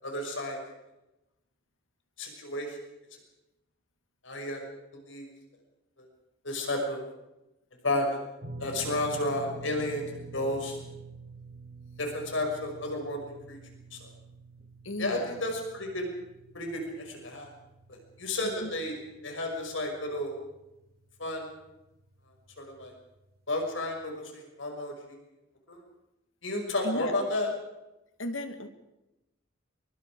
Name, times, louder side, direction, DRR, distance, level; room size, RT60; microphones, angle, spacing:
voice 1, 0.0-0.6 2.2-2.8 4.2-4.6 4.9-5.3 6.4-7.0 7.8-8.2 8.6-10.8 12.0-13.6 13.9-14.1 15.0-16.1 16.5-17.5 17.9-19.0 19.2-20.3 21.2-21.5 22.6-22.9 23.5-24.9 25.7-25.8 26.4-27.5, left 1 dB, 70° left, 2 dB, 6.0 m, -32 dB
sound 1, 8.4-20.7 20.9-21.2 22.8-22.9, right 3 dB, 55° right, 3.5 m, -48 dB
voice 2, 14.8-15.4 18.6-18.7 26.8-27.1 28.2-28.7, left 1 dB, 85° left, 8 dB, 2.3 m, -35 dB
25.0 x 24.0 x 5.0 m, 0.95 s
head